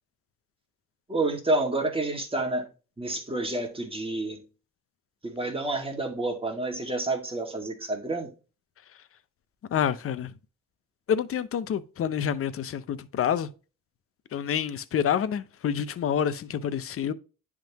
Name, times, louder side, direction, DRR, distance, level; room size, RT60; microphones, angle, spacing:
voice 1, 1.1-2.7 3.0-4.4 5.2-8.3, right 2 dB, 15° right, 1.9 m, -29 dB
voice 2, 9.7-10.3 11.1-13.5 14.3-17.1, left 8 dB, 45° left, 0.7 m, -28 dB
10.0 x 3.7 x 2.9 m
cardioid pair, 85°, 31 cm